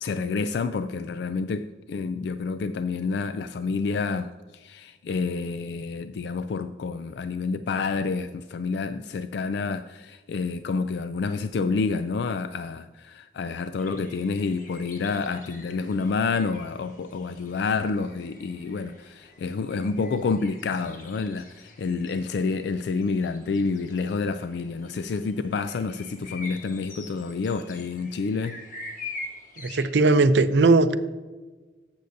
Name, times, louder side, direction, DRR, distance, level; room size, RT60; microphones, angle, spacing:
voice 1, 0.0-4.3 4.6-28.6, left 4 dB, 70° left, 0.3 m, -28 dB
sound 1, 13.8-29.9, left 3 dB, 45° left, 1.2 m, -45 dB
voice 2, 29.7-30.9, right 3 dB, 75° right, 0.5 m, -18 dB
11.5 x 8.1 x 2.6 m
head